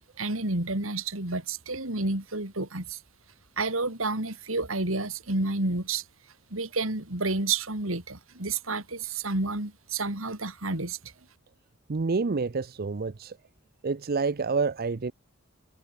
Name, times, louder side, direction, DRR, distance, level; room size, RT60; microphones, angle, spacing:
voice 1, 0.0-3.0 3.6-6.0 6.5-11.1, right 3 dB, 75° right, 4.0 m, -30 dB
voice 2, 11.9-13.4 13.8-15.1, right 4 dB, 45° right, 0.6 m, -28 dB
head